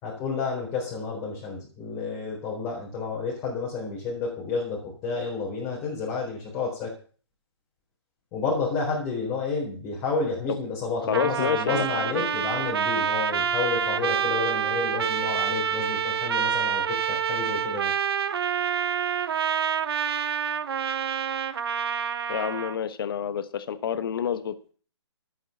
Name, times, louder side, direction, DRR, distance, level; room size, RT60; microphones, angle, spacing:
voice 1, 0.0-6.9 8.3-17.9, left 4 dB, 20° left, -3 dB, 4.0 m, -30 dB
voice 2, 11.1-12.3 22.3-24.7, left 8 dB, 50° left, 12 dB, 1.3 m, -29 dB
Trumpet, 11.1-22.8, right 8 dB, 60° right, 1.0 m, -27 dB
12.0 x 9.1 x 7.1 m, 0.42 s
hypercardioid pair, 155°, 15 cm